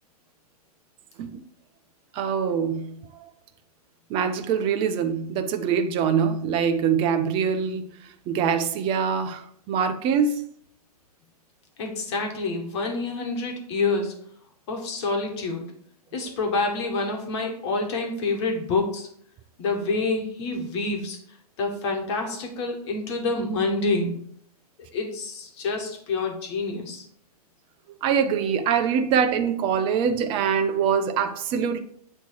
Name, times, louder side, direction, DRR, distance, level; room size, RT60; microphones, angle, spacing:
voice 1, 2.1-3.0 4.1-7.9 8.3-10.4 28.0-31.8, right 7 dB, 25° right, 0.6 m, -24 dB
voice 2, 11.8-14.1 14.7-15.7 16.1-19.1 19.6-21.2 21.6-24.2 24.9-27.0, left 3 dB, 45° left, 1.5 m, -27 dB
8.0 x 3.2 x 4.6 m
figure-of-eight pair, 110°, 20 cm